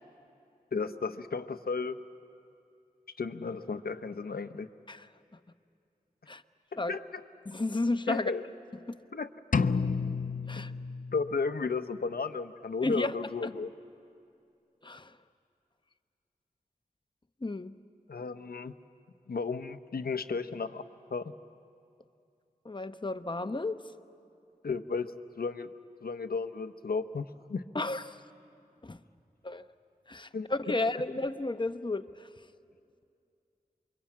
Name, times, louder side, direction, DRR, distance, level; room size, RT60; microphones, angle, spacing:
voice 1, 0.7-2.0 3.2-4.7 6.9-7.2 8.1-8.4 9.1-9.3 10.6-10.7 11.1-13.7 18.1-18.7 19.3-20.8 21.1-21.3 24.6-25.7 26.0-27.6 30.3-30.7, left 4 dB, 80° left, 10 dB, 0.8 m, -34 dB
voice 2, 7.5-8.3 8.9-9.0 10.5-10.7 12.8-13.1 13.4-13.5 14.8-15.2 17.4-17.7 22.6-23.8 27.7-28.2 28.8-29.0 29.4-29.6 30.1-32.3, left 2 dB, 30° left, 10 dB, 0.9 m, -32 dB
sound 1, 9.5-11.5, left 5 dB, 60° left, 0.6 m, -30 dB
28.0 x 23.5 x 8.7 m, 2.5 s
cardioid pair, 45°, 15 cm